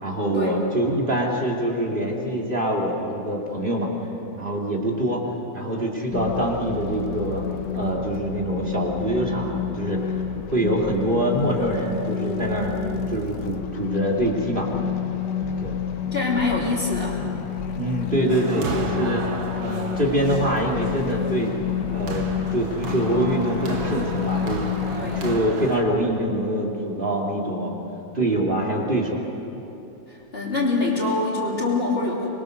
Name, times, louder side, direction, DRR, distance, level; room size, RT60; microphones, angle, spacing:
voice 1, 0.0-3.9 4.3-5.3 5.5-7.4 7.7-10.1 10.5-14.7 15.6-15.8 17.8-19.3 19.6-21.6 21.9-22.3 22.5-24.7 25.2-27.7 28.1-29.2, right 1 dB, 25° right, -1 dB, 2.9 m, -24 dB
sound 1, 6.1-25.4, left 7 dB, 60° left, 1.5 m, -29 dB
voice 2, 16.1-17.2 25.0-25.2 30.1-32.3, left 3 dB, 30° left, -4 dB, 3.3 m, -24 dB
sound 2, 18.3-25.8, right 3 dB, 80° right, 2.6 m, -34 dB
25.5 x 22.0 x 6.7 m, 2.9 s
omnidirectional pair, 2.1 m